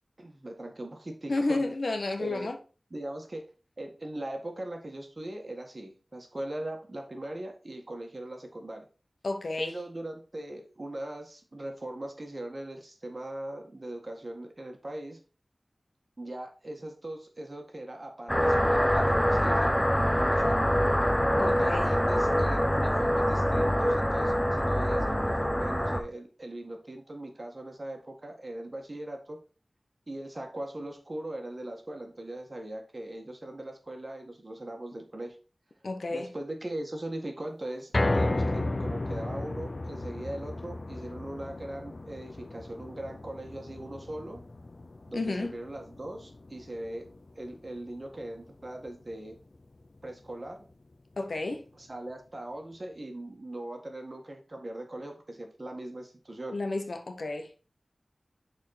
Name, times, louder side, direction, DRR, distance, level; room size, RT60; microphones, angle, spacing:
voice 1, 0.2-1.7 2.2-2.5 2.9-3.5 3.8-8.9 9.6-15.2 16.2-20.7 21.5-29.4 30.1-35.4 36.1-44.4 45.1-47.1 47.4-49.4 50.0-50.7 51.7-56.6, right 1 dB, 40° right, 1.7 m, -40 dB
voice 2, 1.3-2.6 9.2-9.8 21.4-21.9 35.8-36.3 45.1-45.5 51.2-51.6 56.5-57.5, left 2 dB, 80° left, 1.0 m, -31 dB
sound 1, 18.3-26.0, equal, 10° left, 1.0 m, -25 dB
sound 2, 37.9-50.2 50.6-50.7 51.1-51.2, left 2 dB, 55° left, 0.5 m, -34 dB
6.4 x 4.6 x 4.3 m
wide cardioid pair, 65°, 0 cm